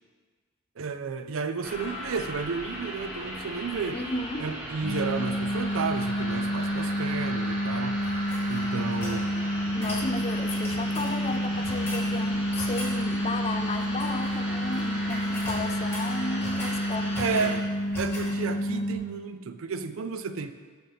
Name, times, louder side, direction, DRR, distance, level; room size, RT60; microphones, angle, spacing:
voice 1, 0.8-4.0 4.4-8.0 8.5-9.4 17.2-17.6 18.0-20.5, right 5 dB, 70° right, 10 dB, 0.5 m, -32 dB
sound 1, 1.6-17.5, equal, 5° right, 1.7 m, -37 dB
voice 2, 3.9-4.5 8.7-8.9 9.7-17.6, left 3 dB, 30° left, 7 dB, 0.4 m, -34 dB
sound 2, 4.8-19.0, equal, 25° right, 1.7 m, -29 dB
sound 3, 8.0-9.2 9.8-10.1 10.5-11.2 11.6-12.1 12.5-13.0 13.8-14.4 14.6-14.8 15.1-16.8 17.1-17.6 17.9-18.3, left 1 dB, 10° left, 1.9 m, -39 dB
9.1 x 6.8 x 4.0 m, 1.5 s
head